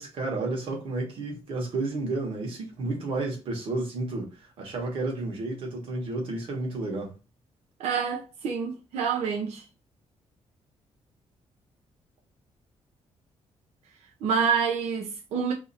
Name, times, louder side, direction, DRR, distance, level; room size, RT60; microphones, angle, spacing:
voice 1, 0.0-7.1, right 2 dB, 60° right, 1.2 m, -31 dB
voice 2, 7.8-9.6 14.2-15.5, right 6 dB, 90° right, 0.6 m, -27 dB
2.8 x 2.5 x 4.0 m
cardioid pair, 175°, 11 cm